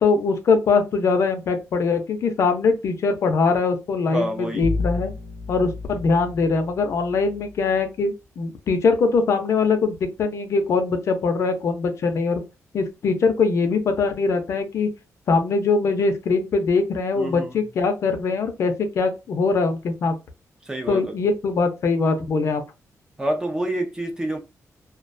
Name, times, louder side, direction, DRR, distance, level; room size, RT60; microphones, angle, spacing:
voice 1, 0.0-5.1 5.5-12.4 12.7-14.9 15.3-20.2 20.9-22.6, left 4 dB, 55° left, 0.5 m, -22 dB
voice 2, 4.1-4.7 17.2-17.5 20.6-21.2 23.2-24.4, right 1 dB, 10° right, 0.4 m, -27 dB
Bowed string instrument, 4.6-7.7, left 3 dB, 70° right, 0.9 m, -31 dB
2.3 x 2.1 x 2.4 m
wide cardioid pair, 180°, 6 cm